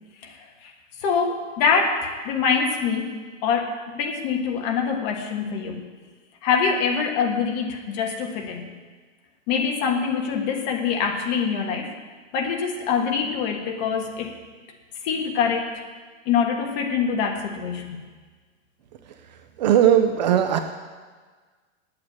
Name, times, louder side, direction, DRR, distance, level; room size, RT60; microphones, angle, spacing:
voice 1, 0.2-0.7 1.0-5.8 6.4-8.7 9.5-11.9 12.3-14.3 15.0-15.8 16.2-18.0, left 6 dB, 35° left, 3 dB, 1.5 m, -24 dB
voice 2, 19.6-20.6, right 10 dB, 35° right, 7 dB, 0.6 m, -18 dB
9.5 x 8.7 x 8.7 m, 1.4 s
hypercardioid pair, 155°, 40 cm